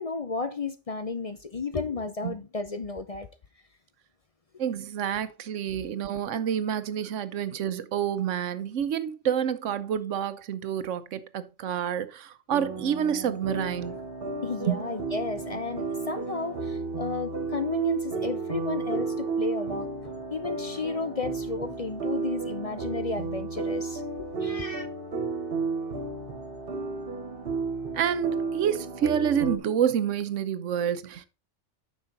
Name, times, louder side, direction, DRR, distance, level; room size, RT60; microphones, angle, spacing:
voice 1, 0.0-3.3 14.4-19.9 20.3-24.9, left 4 dB, 40° left, 0.6 m, -33 dB
voice 2, 4.6-14.0 14.7-14.8 27.9-31.3, right 9 dB, 85° right, 1.1 m, -28 dB
sound 1, 12.5-29.6, right 4 dB, 50° right, 1.6 m, -33 dB
9.5 x 6.1 x 3.9 m
omnidirectional pair, 1.2 m